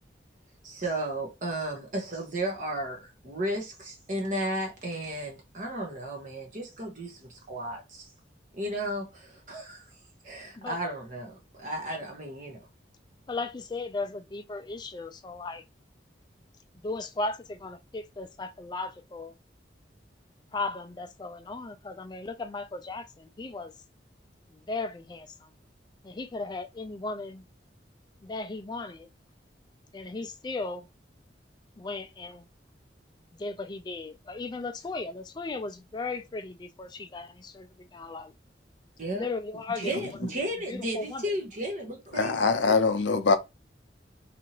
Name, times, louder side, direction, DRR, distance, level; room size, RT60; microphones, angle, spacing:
voice 1, 0.6-8.1 8.5-9.8 10.2-12.6 39.0-39.3 39.8-42.4 42.7-42.8, right 1 dB, 45° right, 0.8 m, -34 dB
voice 2, 13.3-15.6 16.8-19.3 20.5-23.7 24.5-25.5 26.0-27.4 28.2-29.1 29.9-30.9 31.8-32.5 33.4-38.3 39.1-40.1 40.7-41.3, left 3 dB, 25° left, 0.3 m, -36 dB
voice 3, 42.1-43.4, left 4 dB, 80° left, 0.5 m, -23 dB
2.8 x 2.6 x 2.8 m
head